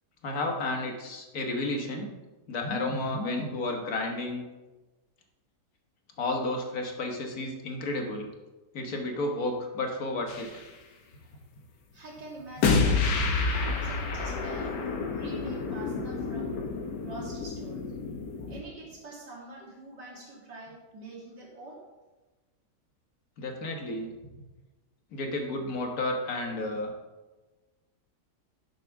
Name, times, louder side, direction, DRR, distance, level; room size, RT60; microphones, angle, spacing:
voice 1, 0.2-2.1 2.5-4.4 6.2-8.3 8.7-10.6 23.4-24.1 25.1-26.9, left 2 dB, 60° left, 2 dB, 1.7 m, -32 dB
sound 1, 10.3-10.6 12.6-18.6, left 4 dB, 85° left, 1.6 m, -29 dB
voice 2, 11.9-13.0 13.5-14.8 15.2-16.6 17.0-17.8 18.5-21.8, right 2 dB, 80° right, -6 dB, 3.5 m, -45 dB
11.0 x 7.5 x 3.5 m, 1.2 s
omnidirectional pair, 1.8 m